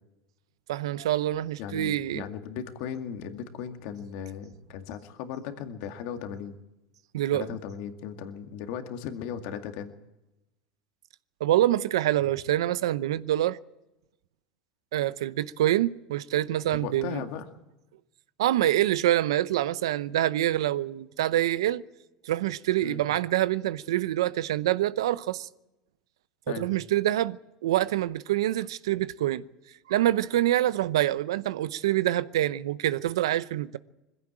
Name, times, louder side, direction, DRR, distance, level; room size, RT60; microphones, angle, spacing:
voice 1, 0.7-2.2 7.1-7.5 11.4-13.6 14.9-17.2 18.4-21.8 22.2-25.5 26.5-27.4 27.6-29.4 29.9-33.8, right 13 dB, 85° right, 0.8 m, -26 dB
voice 2, 1.6-6.6 7.3-9.9 16.7-17.5 22.8-23.0 26.5-26.7, left 8 dB, 65° left, 2.1 m, -37 dB
21.5 x 16.0 x 8.8 m
supercardioid pair, 100°, 3 cm